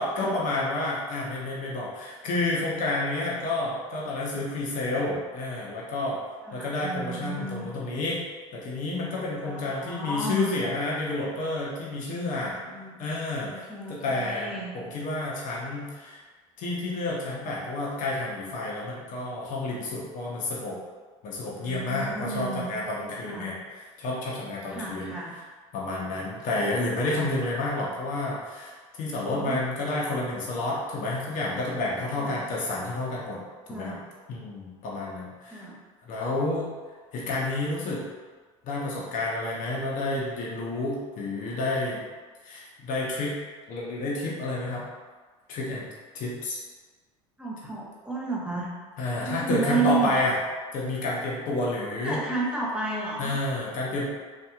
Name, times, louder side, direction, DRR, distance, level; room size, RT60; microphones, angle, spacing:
voice 1, 0.0-6.2 6.5-8.2 8.5-12.6 13.0-14.5 14.7-16.2 16.6-20.8 21.2-23.5 24.0-25.1 25.7-33.4 33.7-34.0 34.3-35.7 36.0-36.7 37.1-38.0 38.6-42.0 42.4-43.4 43.7-44.8 45.5-45.8 46.1-46.6 49.0-50.3 50.7-52.2 53.2-54.1, left 2 dB, 55° left, -5 dB, 0.8 m, -30 dB
voice 2, 6.5-7.7 9.4-10.6 12.3-13.1 13.5-14.7 21.6-22.7 23.2-23.5 24.7-25.3 29.1-29.6 32.2-32.4 33.7-34.0 35.5-35.8 47.4-48.7 49.2-50.2 51.0-51.1 51.9-53.4, right 3 dB, 5° right, -5 dB, 0.8 m, -32 dB
2.8 x 2.5 x 2.3 m, 1.4 s
hypercardioid pair, 80°, 17 cm